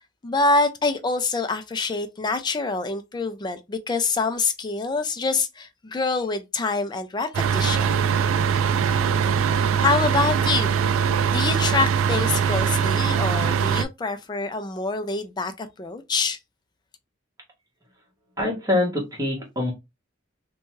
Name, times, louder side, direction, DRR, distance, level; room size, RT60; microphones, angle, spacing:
voice 1, 0.2-8.1 9.8-10.8 11.3-16.4, left 3 dB, 20° left, 0.4 m, -26 dB
sound 1, 7.3-13.8, right 7 dB, 90° right, 0.3 m, -22 dB
voice 2, 18.4-19.7, left 2 dB, 20° right, 1.2 m, -24 dB
2.7 x 2.2 x 3.0 m
head